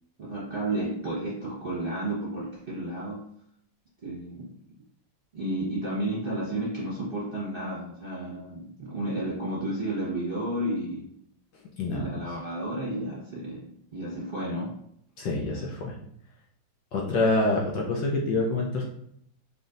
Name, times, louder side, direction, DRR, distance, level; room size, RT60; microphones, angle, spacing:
voice 1, 0.2-3.3 4.0-4.5 5.3-11.1 11.8-14.8, right 1 dB, 35° right, -7 dB, 0.9 m, -32 dB
voice 2, 11.8-12.1 15.2-15.9 16.9-18.8, left 2 dB, 70° left, -2 dB, 1.2 m, -26 dB
5.1 x 2.8 x 2.5 m, 0.69 s
omnidirectional pair, 2.4 m